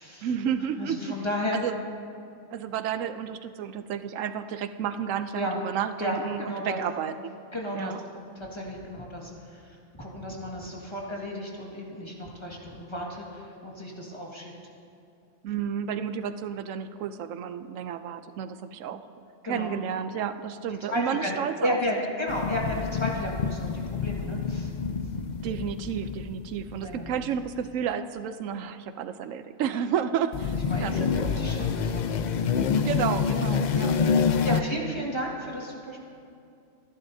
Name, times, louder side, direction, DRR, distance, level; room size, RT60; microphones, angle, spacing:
voice 1, 0.2-1.1 1.5-1.7 2.5-7.3 7.7-8.0 15.4-19.1 19.4-21.8 25.4-31.0 31.5-31.7 32.7-34.0 34.2-34.6, right 8 dB, 85° right, 11 dB, 1.0 m, -31 dB
voice 2, 0.8-1.6 5.3-5.6 6.0-6.8 7.5-7.9 8.4-14.5 19.4-19.7 20.9-21.3 21.6-24.7 26.8-27.1 30.7-31.1 31.4-32.3 33.8-34.1 34.4-36.0, left 1 dB, 20° left, -2 dB, 1.8 m, -33 dB
sound 1, 22.3-27.3 30.3-34.6, left 6 dB, 55° left, 0.5 m, -27 dB
26.0 x 11.5 x 2.7 m, 2.5 s
omnidirectional pair, 1.3 m